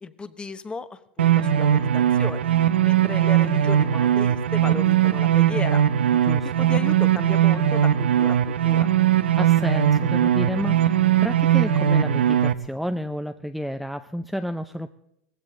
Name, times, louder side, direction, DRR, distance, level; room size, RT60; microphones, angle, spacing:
voice 1, 0.0-2.5 2.8-5.8 6.6-8.9, left 4 dB, 15° left, 13 dB, 1.1 m, -35 dB
sound 1, 1.2-12.5, right 10 dB, 85° right, 0.8 m, -20 dB
voice 2, 6.1-6.7 9.2-14.9, equal, ahead, 8 dB, 0.6 m, -31 dB
18.0 x 15.5 x 3.8 m, 0.78 s
hypercardioid pair, 100°, 6 cm